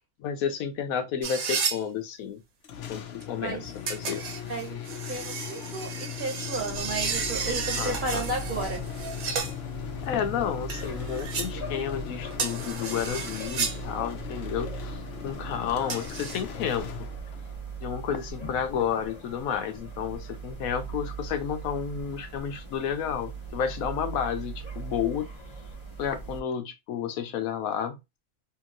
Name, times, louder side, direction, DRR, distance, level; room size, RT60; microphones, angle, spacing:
voice 1, 0.2-2.4 2.9-4.2 7.8-8.3 10.0-17.1 17.8-25.3 26.0-28.0, left 8 dB, 80° left, 1.0 m, -31 dB
sound 1, 1.2-1.8 3.9-9.5 10.7-11.5 12.3-13.8 15.9-16.4, right 5 dB, 75° right, 1.2 m, -33 dB
sound 2, 2.6-17.6, left 9 dB, 65° left, 0.6 m, -39 dB
voice 2, 4.5-8.9, right 2 dB, 40° right, 0.9 m, -33 dB
sound 3, 6.5-26.4, right 4 dB, 25° left, 0.9 m, -40 dB
2.9 x 2.8 x 2.4 m
omnidirectional pair, 1.5 m